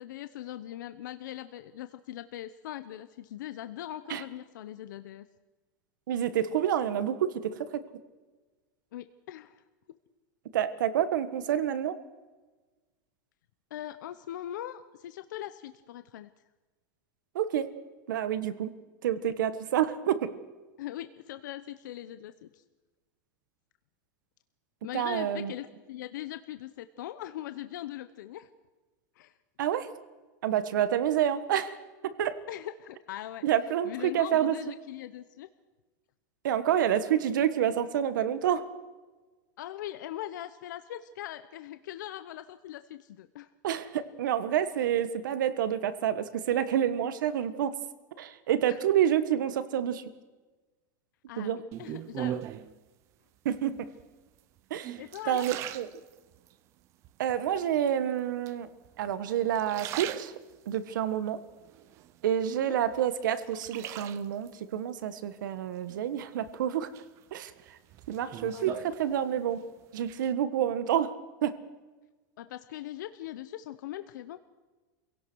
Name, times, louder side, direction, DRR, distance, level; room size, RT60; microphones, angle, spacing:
voice 1, 0.0-5.2 8.9-9.6 13.7-16.3 20.8-22.6 24.8-28.5 29.2-29.3 32.5-33.4 33.8-35.5 39.6-43.5 48.7-48.8 51.3-52.4 55.0-55.5 62.6-62.8 68.5-68.9 72.4-74.4, left 13 dB, 75° left, 11 dB, 0.8 m, -41 dB
voice 2, 6.1-7.7 10.5-12.0 17.3-17.7 18.1-18.7 19.0-20.3 24.9-25.5 29.6-29.9 30.4-31.8 32.0-32.4 33.4-34.5 36.4-38.7 43.6-47.8 48.2-50.0 51.4-51.6 53.4-53.9 54.7-55.0 55.3-55.9 57.2-58.7 59.0-60.3 60.7-61.4 62.2-66.9 67.3-67.5 68.1-69.6 69.9-71.1 71.4-71.6, right 10 dB, 85° right, 13 dB, 1.5 m, -28 dB
sound 1, 51.7-52.8 53.5-54.0 54.6-56.5 57.0-57.7 58.5-59.1 59.5-60.8 61.3-62.5 62.9-64.5 65.9-66.5 66.9-69.6 69.8-70.3, right 12 dB, 30° right, 0.6 m, -40 dB
27.0 x 17.0 x 6.3 m, 1.3 s
supercardioid pair, 175°, 10 cm